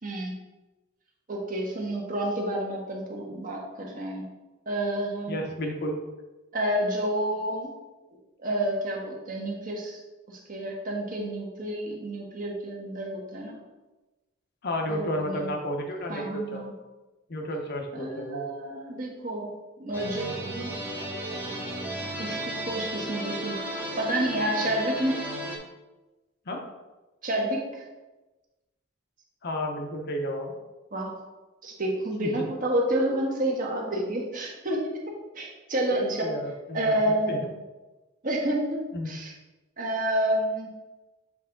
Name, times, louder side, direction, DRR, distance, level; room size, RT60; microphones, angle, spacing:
voice 1, 0.0-0.3 1.3-4.2 4.7-5.4 6.5-7.7 8.4-10.0 10.3-13.5 14.9-15.5 16.1-16.7 17.9-20.8 22.2-23.6 24.0-25.2 27.2-27.8 30.9-31.1 31.6-35.0 35.3-36.3 36.7-37.4 38.2-39.3 39.8-40.7, right 1 dB, 40° right, -1 dB, 1.2 m, -29 dB
voice 2, 5.3-6.0 14.6-16.6 17.3-18.4 26.5-26.6 29.4-30.5 32.2-32.5 35.9-36.9 37.3-37.4 38.9-39.1, equal, 50° left, 2 dB, 0.9 m, -32 dB
sound 1, 19.9-25.6, right 1 dB, 10° right, 0.9 m, -34 dB
7.4 x 3.5 x 3.8 m, 1.1 s
head